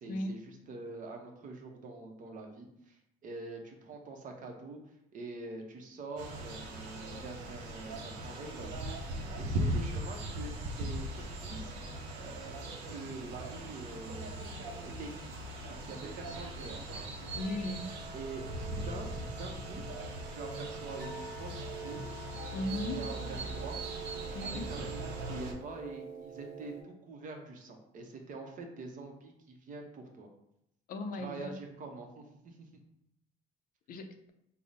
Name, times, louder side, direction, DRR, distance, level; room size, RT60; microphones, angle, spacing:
voice 1, 0.0-4.8 5.1-8.7 9.3-11.7 12.1-15.3 15.7-16.8 18.1-19.1 19.4-19.8 20.3-22.1 22.7-23.8 24.4-30.3 31.1-32.6, right 3 dB, 50° right, 3 dB, 0.7 m, -45 dB
sound 1, 6.2-25.5, right 1 dB, 90° right, 0.6 m, -39 dB
voice 2, 17.3-17.9 22.5-23.0 24.3-24.7 30.9-31.5 33.9-34.3, left 2 dB, 55° left, 7 dB, 0.4 m, -37 dB
sound 2, 17.3-26.8, right 5 dB, 10° left, 1.1 m, -46 dB
3.5 x 2.0 x 4.0 m, 0.79 s
cardioid pair, 110°, 17 cm